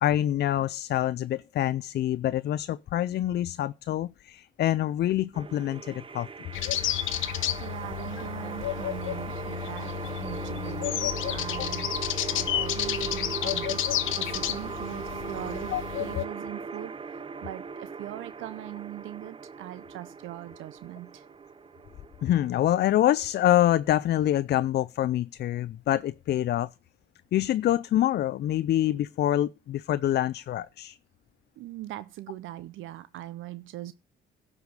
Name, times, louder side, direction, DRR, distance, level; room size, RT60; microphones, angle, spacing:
voice 1, 0.0-6.3 15.7-15.8 22.2-26.7 27.3-31.0, left 12 dB, 55° left, 0.4 m, -26 dB
sound 1, 5.3-24.3, right 5 dB, 25° right, 0.5 m, -39 dB
sound 2, 6.5-16.2, left 13 dB, 85° left, 0.9 m, -31 dB
voice 2, 7.6-12.1 12.3-17.0 17.4-21.3 31.6-33.9, right 14 dB, 85° right, 0.5 m, -41 dB
11.5 x 5.0 x 6.5 m
cardioid pair, 90°, 20 cm